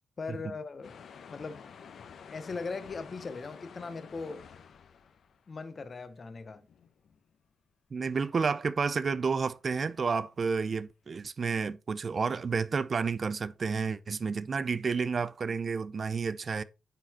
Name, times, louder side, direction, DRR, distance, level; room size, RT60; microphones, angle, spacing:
voice 1, 0.2-1.0 1.3-1.6 2.3-4.4 5.5-6.6, left 4 dB, 40° left, 0.9 m, -39 dB
sound 1, 0.8-5.6 6.0-6.4 6.7-7.4 9.0-9.1 9.6-10.5, left 6 dB, 70° left, 0.9 m, -51 dB
voice 2, 7.9-16.6, right 5 dB, 45° right, 0.5 m, -30 dB
9.2 x 4.1 x 4.2 m
cardioid pair, 100°, 0 cm